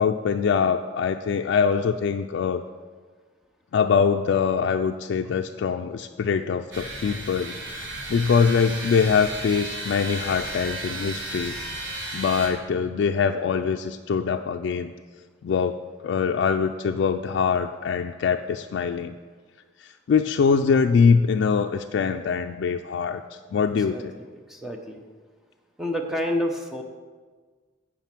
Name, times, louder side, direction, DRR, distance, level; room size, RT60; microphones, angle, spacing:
voice 1, 0.0-2.6 3.7-11.6 12.1-14.9 15.4-15.8 16.0-19.2 19.8-23.2 23.5-24.1, left 6 dB, 80° left, 5 dB, 0.3 m, -23 dB
sound 1, 6.7-12.5, right 2 dB, 85° right, 1.5 m, -34 dB
voice 2, 23.9-25.0 25.8-26.8, equal, ahead, 2 dB, 0.7 m, -29 dB
9.1 x 5.0 x 6.0 m, 1.5 s
head